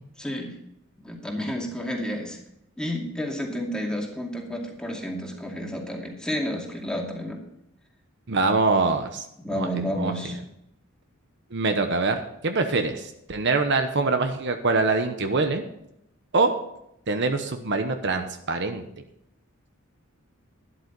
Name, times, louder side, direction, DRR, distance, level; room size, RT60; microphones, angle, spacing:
voice 1, 0.2-0.5 1.0-2.4 2.8-7.4 9.4-10.4, equal, 5° left, 0 dB, 2.4 m, -31 dB
voice 2, 8.3-9.2 9.5-9.7 10.0-10.1 11.5-15.6 16.3-16.5 17.1-18.8, right 3 dB, 55° right, 6 dB, 1.1 m, -24 dB
12.5 x 11.0 x 4.1 m, 0.79 s
head